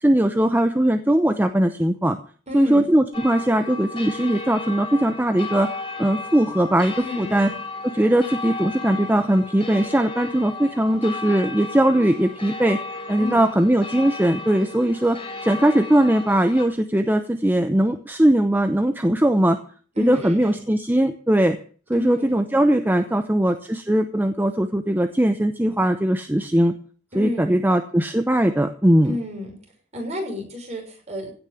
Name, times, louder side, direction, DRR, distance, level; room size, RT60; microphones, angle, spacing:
voice 1, 0.0-2.2 2.5-5.7 6.0-7.5 7.9-12.8 13.1-19.6 20.0-21.6 21.9-26.7 27.1-29.1, right 1 dB, 10° right, 8 dB, 0.7 m, -20 dB
voice 2, 2.5-2.9 7.0-7.6 13.2-13.4 19.9-20.6 21.9-22.4 27.1-27.6 29.0-29.6 29.9-31.3, left 2 dB, 35° right, 0 dB, 6.2 m, -31 dB
sound 1, 3.1-16.7, left 3 dB, 25° left, 3.6 m, -34 dB
16.5 x 6.5 x 8.5 m, 0.43 s
head